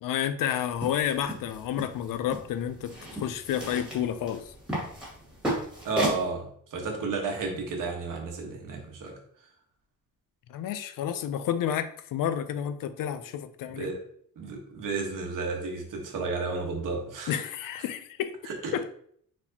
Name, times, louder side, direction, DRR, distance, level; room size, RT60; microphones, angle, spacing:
voice 1, 0.0-4.5 10.5-13.9 17.3-18.3 18.7-18.9, left 10 dB, 70° left, 0.5 m, -30 dB
sound 1, 0.7-6.2, right 1 dB, ahead, 1.7 m, -35 dB
voice 2, 5.8-6.4 6.7-9.1 13.7-14.0 14.4-17.3 18.4-18.9, right 4 dB, 65° right, 1.2 m, -32 dB
4.4 x 4.2 x 2.8 m
cardioid pair, 160°, 35 cm